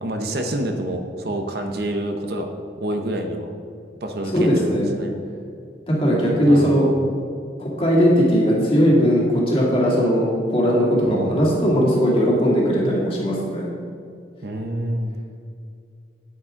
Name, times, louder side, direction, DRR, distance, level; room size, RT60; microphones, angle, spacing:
voice 1, 0.0-2.5 2.8-3.5 4.0-5.1 6.4-7.0 11.1-11.4 14.4-15.1, right 1 dB, 60° right, 4 dB, 0.8 m, -27 dB
voice 2, 4.3-4.9 5.9-6.9 7.6-13.7, equal, 30° left, -4 dB, 2.2 m, -18 dB
9.0 x 8.8 x 3.7 m, 2.4 s
head